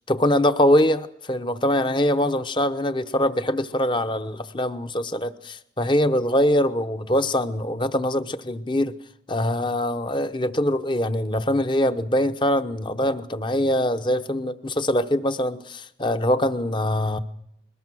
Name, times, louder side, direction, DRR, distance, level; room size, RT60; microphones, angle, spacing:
voice 1, 0.1-8.9 9.3-17.2, left 1 dB, 25° left, 10 dB, 0.9 m, -23 dB
21.5 x 19.5 x 6.3 m, 0.80 s
head